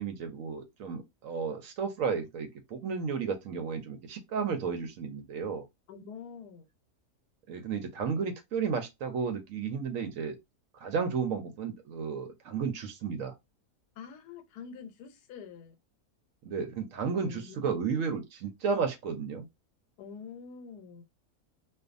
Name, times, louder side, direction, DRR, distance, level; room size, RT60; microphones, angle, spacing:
voice 1, 0.0-5.7 7.5-10.4 10.8-13.3 16.5-19.5, right 6 dB, 70° right, 0.8 m, -33 dB
voice 2, 5.9-6.7 14.0-15.7 17.3-18.0 20.0-21.0, left 6 dB, 85° left, 1.2 m, -46 dB
2.5 x 2.3 x 2.4 m
omnidirectional pair, 1.7 m